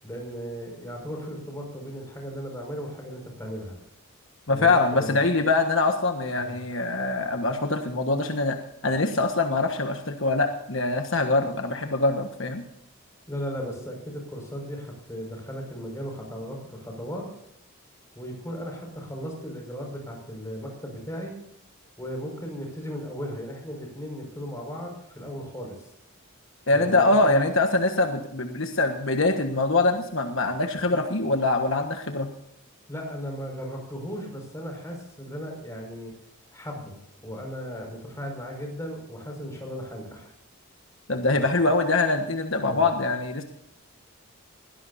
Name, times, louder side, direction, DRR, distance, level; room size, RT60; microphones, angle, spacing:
voice 1, 0.0-3.8 4.5-5.2 6.4-6.6 13.3-17.2 18.2-21.4 22.0-25.8 26.7-27.4 30.9-31.0 32.9-36.1 36.5-40.3 41.6-41.7 42.6-42.8, equal, 15° left, 1 dB, 5.7 m, -36 dB
voice 2, 4.5-8.6 8.8-12.6 26.7-32.3 41.1-43.4, left 2 dB, 60° left, 4 dB, 1.5 m, -23 dB
22.0 x 17.0 x 2.7 m, 0.77 s
head